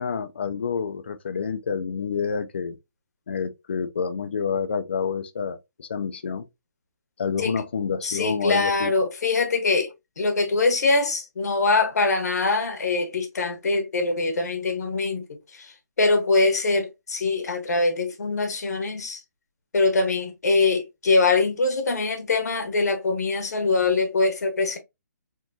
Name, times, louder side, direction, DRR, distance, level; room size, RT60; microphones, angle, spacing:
voice 1, 0.0-2.8 3.3-6.4 7.2-8.9, left 6 dB, 40° left, 0.5 m, -28 dB
voice 2, 8.0-19.2 19.7-24.8, left 3 dB, 65° left, 1.3 m, -23 dB
4.4 x 2.9 x 2.7 m
hypercardioid pair, 180°, 10 cm